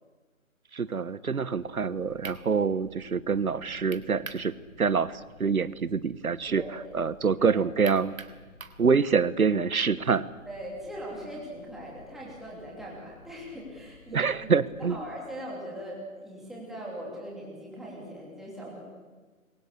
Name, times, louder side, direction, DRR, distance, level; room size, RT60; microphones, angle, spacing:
voice 1, 0.7-6.6 6.9-8.1 8.8-10.3 14.1-15.0, right 5 dB, 90° right, 16 dB, 1.4 m, -26 dB
sound 1, 1.2-15.2, left 2 dB, 40° left, 4.1 m, -54 dB
sound 2, 2.2-2.4 3.9-4.5 4.9-5.0 7.8-8.8, right 4 dB, 75° right, 3.3 m, -42 dB
voice 2, 6.5-6.9 7.4-7.6 10.5-14.3 14.8-18.8, equal, ahead, -4 dB, 3.0 m, -40 dB
27.0 x 23.0 x 8.3 m, 1.4 s
hypercardioid pair, 170°, 42 cm